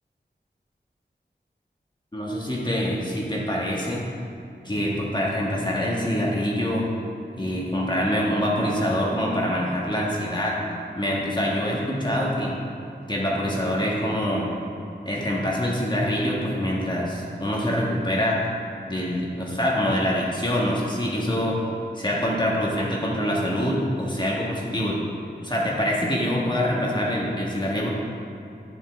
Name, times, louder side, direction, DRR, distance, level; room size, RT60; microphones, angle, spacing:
voice 1, 2.1-4.0 4.6-6.9 7.3-10.6 10.9-12.5 13.1-14.5 15.0-18.4 18.9-21.6 21.9-25.0 25.4-27.9, equal, 25° left, -4 dB, 1.5 m, -25 dB
10.0 x 7.6 x 3.6 m, 2.7 s
wide cardioid pair, 70°, 18 cm